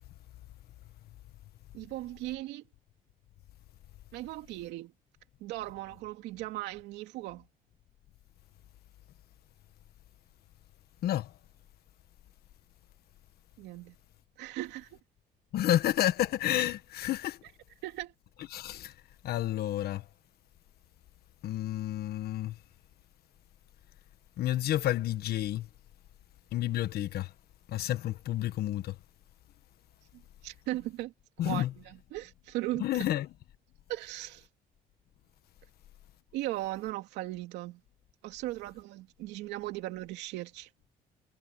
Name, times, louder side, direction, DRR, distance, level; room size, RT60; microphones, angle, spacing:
voice 1, 1.7-2.6 4.1-4.9 5.4-7.5 13.6-13.9 14.4-15.0 17.8-18.1 30.4-31.1 31.4-33.1 33.9-34.5 36.3-37.8 38.2-40.7, right 16 dB, 90° right, 2.9 m, -38 dB
voice 2, 15.5-17.4 18.5-18.9 19.2-20.0 21.4-22.5 24.4-25.7 26.5-27.3 27.7-28.9 31.4-31.7 32.8-33.3, left 13 dB, 65° left, 1.3 m, -30 dB
cardioid pair, 110°, 17 cm